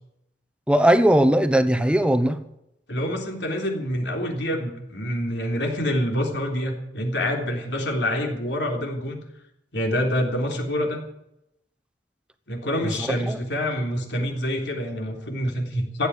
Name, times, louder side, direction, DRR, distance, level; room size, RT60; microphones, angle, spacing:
voice 1, 0.7-2.4 12.8-13.4, right 1 dB, 5° right, 1.0 m, -19 dB
voice 2, 2.9-9.2 9.7-11.0 12.5-16.1, equal, 75° left, 3.5 m, -26 dB
15.0 x 8.9 x 9.9 m
head